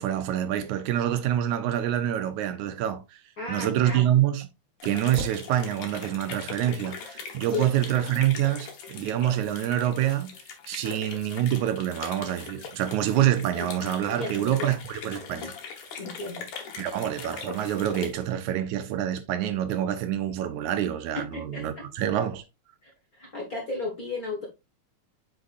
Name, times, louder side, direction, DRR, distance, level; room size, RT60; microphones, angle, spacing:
voice 1, 0.0-3.2 3.5-4.5 4.8-10.3 10.7-15.5 16.8-22.4, right 11 dB, 75° right, 2.0 m, -26 dB
voice 2, 3.4-4.1 7.5-7.7 10.7-11.0 13.5-13.7 14.2-14.7 16.0-16.5 21.1-21.9 22.2-22.3 22.8-24.5, left 3 dB, 40° left, 1.3 m, -35 dB
sound 1, 4.8-18.1, left 6 dB, 65° left, 2.7 m, -41 dB
8.1 x 5.7 x 2.5 m
omnidirectional pair, 3.6 m